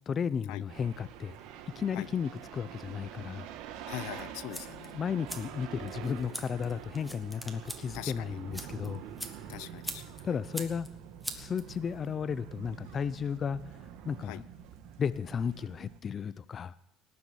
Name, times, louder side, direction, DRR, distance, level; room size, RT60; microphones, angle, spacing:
voice 1, 0.1-1.4 1.8-3.5 4.9-9.0 10.2-10.9 11.4-13.6 14.0-14.5 15.0-16.7, left 7 dB, 30° left, 0.5 m, -34 dB
sound 1, 0.7-16.0, right 9 dB, 75° right, 1.6 m, -46 dB
voice 2, 3.8-5.0 7.9-8.4 9.5-10.4 14.2-14.4, left 17 dB, 80° left, 0.6 m, -42 dB
sound 2, 4.1-12.1, equal, ahead, 1.6 m, -45 dB
18.5 x 7.1 x 9.9 m
cardioid pair, 140°, 0 cm